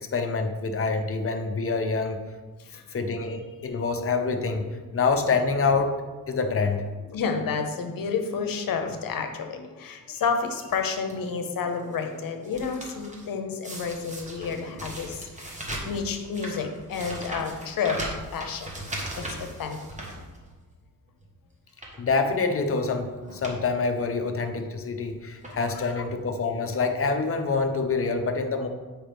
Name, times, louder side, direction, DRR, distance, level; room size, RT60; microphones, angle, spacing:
voice 1, 0.1-2.2 2.9-6.0 6.3-6.8 22.0-28.7, left 4 dB, 40° left, 5 dB, 0.7 m, -26 dB
voice 2, 2.6-2.9 7.1-18.0 18.3-18.7 19.2-19.8 25.5-25.9, left 5 dB, 70° left, 6 dB, 0.9 m, -30 dB
sound 1, 10.7-11.1 11.7-13.3 13.6-20.7 21.1-21.3 21.7-22.1 22.9-23.0 23.2-23.6 23.9-24.0 24.9-25.1 25.4-25.9 26.7-26.8 27.0-27.1, right 1 dB, 20° right, 1.2 m, -38 dB
7.5 x 5.0 x 3.4 m, 1.3 s
wide cardioid pair, 130°, 35 cm